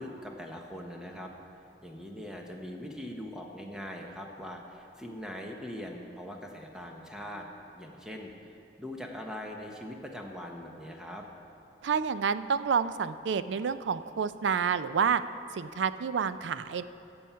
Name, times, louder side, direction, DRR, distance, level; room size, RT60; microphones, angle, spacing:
voice 1, 0.0-1.3 1.8-7.5 7.7-8.5 8.8-11.3, equal, 5° right, 1 dB, 0.8 m, -41 dB
voice 2, 11.8-15.2 15.5-16.8, right 6 dB, 85° right, 13 dB, 0.4 m, -29 dB
15.0 x 7.1 x 5.6 m, 2.8 s
head